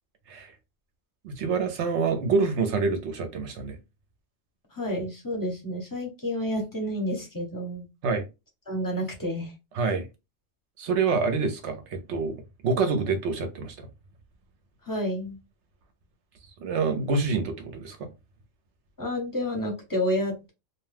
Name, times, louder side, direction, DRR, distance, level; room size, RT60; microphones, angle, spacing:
voice 1, 1.2-3.8 8.0-8.2 9.8-10.1 10.8-12.4 12.6-13.9 16.6-18.1, right 4 dB, 65° right, 0.9 m, -26 dB
voice 2, 4.7-7.9 8.7-9.5 14.9-15.4 19.0-20.5, equal, 20° left, 0.7 m, -30 dB
2.4 x 2.2 x 3.2 m
omnidirectional pair, 1.4 m